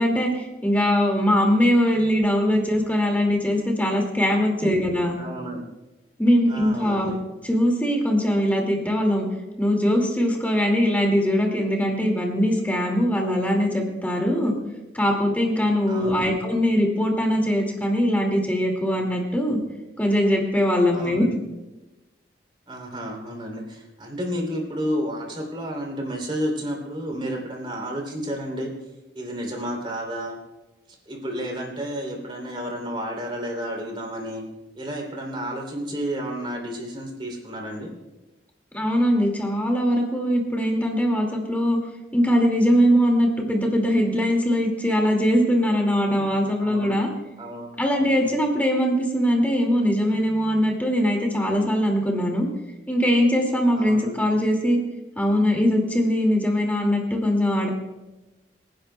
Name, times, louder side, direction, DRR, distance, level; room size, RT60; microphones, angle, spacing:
voice 1, 0.0-5.2 6.2-7.1 7.4-9.3 9.6-14.6 14.9-19.6 20.0-21.2 38.7-41.8 42.1-47.1 47.8-52.5 52.9-54.8 55.2-57.7, equal, 10° left, 1 dB, 2.2 m, -21 dB
voice 2, 4.6-5.6 6.5-7.2 15.9-16.4 20.9-21.4 22.7-28.7 29.1-30.4 31.1-34.4 34.7-37.9 46.2-46.3 46.6-47.0 47.4-48.4 53.7-54.3, equal, 30° right, 0 dB, 3.0 m, -31 dB
26.0 x 10.5 x 2.3 m, 1.0 s
head